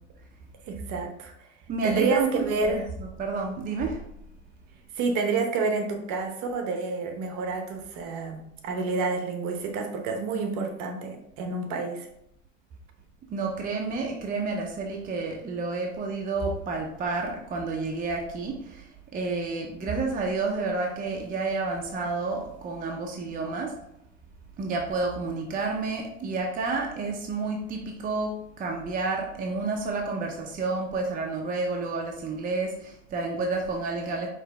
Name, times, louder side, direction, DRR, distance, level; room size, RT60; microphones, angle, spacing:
voice 1, 0.6-1.5 1.8-2.9 4.9-12.1, right 4 dB, 50° right, 4 dB, 0.9 m, -29 dB
voice 2, 1.7-4.0 13.3-23.8 24.6-34.3, right 3 dB, 20° right, 1 dB, 0.6 m, -30 dB
4.6 x 3.0 x 3.3 m, 0.78 s
hypercardioid pair, 105°, 38 cm